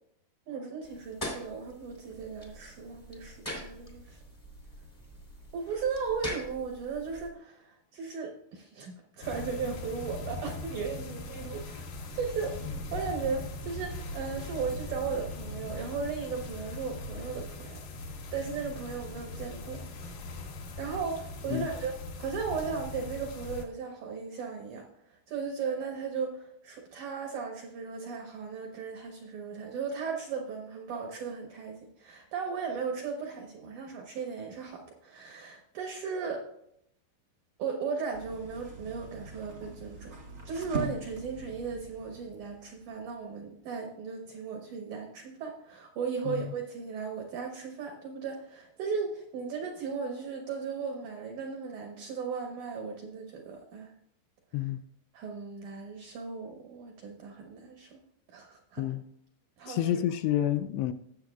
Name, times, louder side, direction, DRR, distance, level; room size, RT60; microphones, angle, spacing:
voice 1, 0.5-4.2 5.5-11.8 12.1-12.6 12.9-17.8 18.3-19.8 20.8-24.9 25.3-36.5 37.6-40.1 40.4-53.9 55.1-58.0 58.3-58.8 59.6-60.0, right 5 dB, 70° right, 2 dB, 1.8 m, -36 dB
sound 1, 0.8-7.3, equal, 20° left, 1.0 m, -43 dB
sound 2, 9.2-23.7, left 2 dB, 65° left, 2.6 m, -40 dB
sound 3, 38.1-43.2, right 2 dB, 45° right, 1.1 m, -41 dB
voice 2, 59.7-60.9, left 12 dB, 85° left, 11 dB, 2.6 m, -29 dB
19.5 x 7.6 x 2.4 m, 0.76 s
omnidirectional pair, 5.0 m